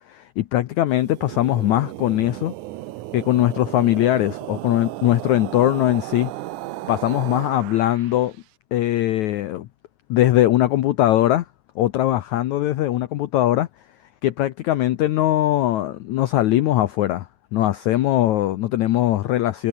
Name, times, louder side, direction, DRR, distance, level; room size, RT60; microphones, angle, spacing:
voice 1, 0.1-2.5 3.1-6.3 6.9-8.3 8.7-9.7 10.1-11.4 11.7-13.7 14.2-19.7, left 14 dB, 85° left, 1.6 m, -20 dB
sound 1, 0.9-8.3, right 17 dB, 85° right, 1.7 m, -35 dB
omnidirectional pair, 4.5 m